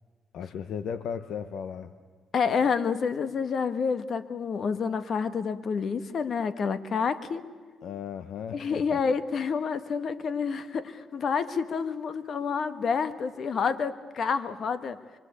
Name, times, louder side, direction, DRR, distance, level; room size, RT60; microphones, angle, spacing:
voice 1, 0.3-1.9 7.8-9.0, left 7 dB, 75° left, 11 dB, 1.0 m, -36 dB
voice 2, 2.3-7.5 8.5-15.0, left 6 dB, 55° left, 12 dB, 1.4 m, -28 dB
24.5 x 24.5 x 8.3 m, 1.5 s
cardioid pair, 90°, 0 cm